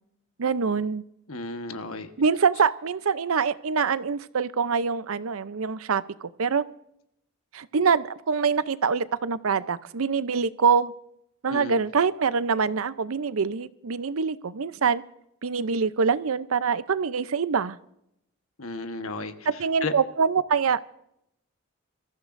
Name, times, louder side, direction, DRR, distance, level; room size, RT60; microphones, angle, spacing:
voice 1, 0.4-1.0 2.2-6.6 7.5-10.9 11.4-15.0 15.4-17.8 19.5-20.8, right 5 dB, 75° right, 15 dB, 0.6 m, -25 dB
voice 2, 1.3-2.1 11.5-11.8 18.6-19.3 19.8-19.9, left 3 dB, 75° left, 8 dB, 1.2 m, -33 dB
25.0 x 14.5 x 2.6 m, 0.76 s
head